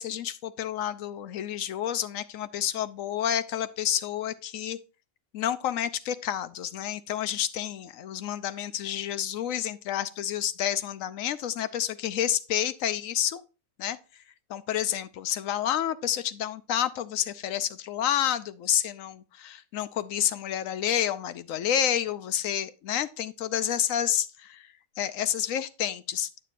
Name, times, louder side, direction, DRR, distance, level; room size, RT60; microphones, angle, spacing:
voice 1, 0.0-4.8 5.3-13.4 13.8-14.0 14.5-24.7 25.0-26.3, left 10 dB, 75° left, 1.0 m, -29 dB
9.1 x 6.7 x 2.5 m
omnidirectional pair, 1.4 m